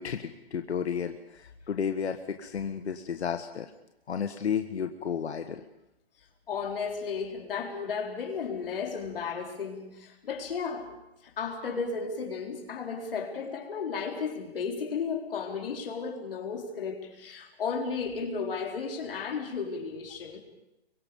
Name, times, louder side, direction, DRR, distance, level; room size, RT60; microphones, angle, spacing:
voice 1, 0.0-3.7 4.1-5.6, left 7 dB, 85° left, 1.5 m, -32 dB
voice 2, 6.5-10.9 11.2-20.4, left 5 dB, 60° left, 4.2 m, -34 dB
26.5 x 23.5 x 5.3 m
hypercardioid pair, 170°, 32 cm